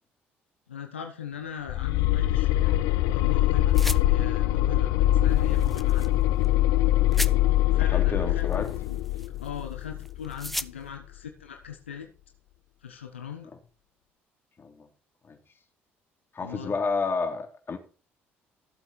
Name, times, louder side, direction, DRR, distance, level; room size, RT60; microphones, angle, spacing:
voice 1, 0.7-6.2 7.7-12.1 12.8-13.5 16.4-16.8, left 8 dB, 90° left, 5 dB, 1.1 m, -40 dB
sound 1, 1.7-10.6, left 14 dB, 70° left, 0.6 m, -23 dB
sound 2, 3.7-4.0 5.4-6.1 6.4-6.5 7.1-7.3 8.4-9.6 10.0-10.7, equal, ahead, 0.7 m, -35 dB
voice 2, 7.9-8.7 14.6-14.9 15.3-15.4 16.3-17.8, left 4 dB, 35° left, 4 dB, 3.2 m, -30 dB
15.5 x 8.0 x 4.3 m, 0.37 s
hypercardioid pair, 55°, 6 cm